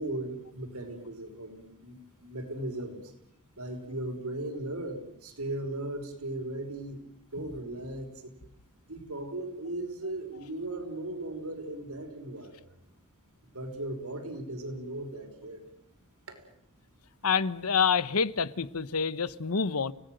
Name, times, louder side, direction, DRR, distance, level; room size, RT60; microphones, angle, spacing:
voice 1, 0.0-3.0 3.6-7.0 7.3-8.3 8.9-12.6 13.5-15.6 16.3-16.4, right 1 dB, 90° right, 5.6 m, -37 dB
voice 2, 17.2-19.9, left 6 dB, 85° left, 1.0 m, -27 dB
30.0 x 18.0 x 7.9 m
head